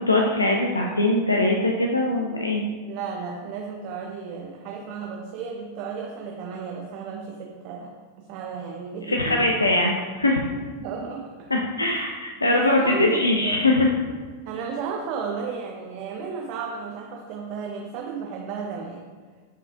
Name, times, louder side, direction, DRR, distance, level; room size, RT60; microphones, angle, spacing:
voice 1, 0.0-2.6 9.1-10.4 11.5-13.9, left 2 dB, 80° left, 0 dB, 0.3 m, -22 dB
voice 2, 2.9-9.6 10.8-11.5 11.8-12.0 12.5-13.7 14.4-19.1, right 5 dB, 45° right, 0 dB, 0.4 m, -33 dB
4.5 x 3.4 x 2.7 m, 1.5 s
figure-of-eight pair, 90°, 0 cm